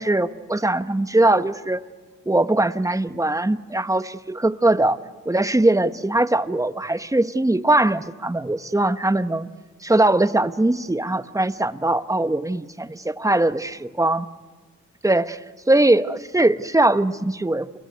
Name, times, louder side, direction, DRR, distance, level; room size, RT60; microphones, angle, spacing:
voice 1, 0.0-1.8 2.3-5.0 5.2-9.5 9.8-14.3 15.0-15.3 15.7-17.8, right 2 dB, 10° right, 12 dB, 1.2 m, -21 dB
29.5 x 21.5 x 9.4 m, 1.4 s
cardioid pair, 55°, 32 cm